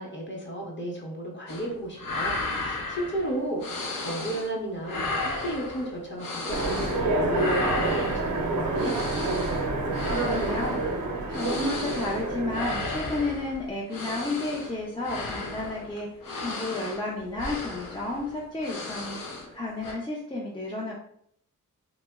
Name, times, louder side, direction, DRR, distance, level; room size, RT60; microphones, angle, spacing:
voice 1, 0.0-9.0, right 1 dB, 35° left, -1 dB, 0.8 m, -34 dB
sound 1, 1.5-1.7 1.9-4.5 4.8-7.0 7.3-19.5 19.8-19.9, left 2 dB, 85° left, 0.7 m, -34 dB
Train, 6.5-13.4, right 2 dB, 60° right, 0.6 m, -28 dB
voice 2, 10.1-10.8 11.3-16.1 16.4-19.2 19.5-21.0, left 2 dB, 15° left, -4 dB, 0.4 m, -32 dB
2.9 x 2.0 x 3.4 m, 0.66 s
wide cardioid pair, 160°, 33 cm